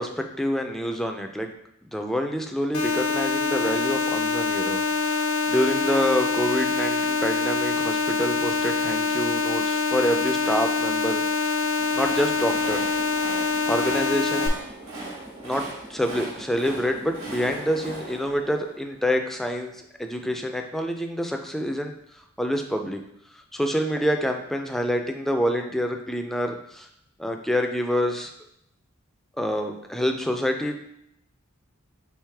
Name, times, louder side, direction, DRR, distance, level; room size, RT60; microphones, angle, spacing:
voice 1, 0.0-1.5 1.9-11.2 11.9-12.8 13.7-14.5 15.4-21.9 22.4-23.0 23.5-26.9 27.2-28.3 29.4-30.8, equal, ahead, 4 dB, 0.3 m, -27 dB
sound 1, 2.7-14.5, left 4 dB, 85° left, 0.6 m, -25 dB
Train, 11.5-19.6, right 2 dB, 80° right, 1.6 m, -39 dB
4.7 x 3.1 x 3.4 m, 0.75 s
head